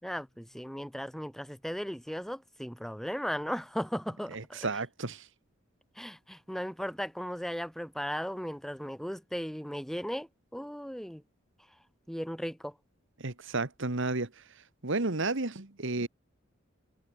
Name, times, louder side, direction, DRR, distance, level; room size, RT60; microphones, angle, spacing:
voice 1, 0.0-4.7 6.0-11.2 12.1-12.7, equal, ahead, 6.0 m, -36 dB
voice 2, 4.3-5.2 13.2-14.3 14.8-16.1, right 3 dB, 65° right, 1.8 m, -32 dB
head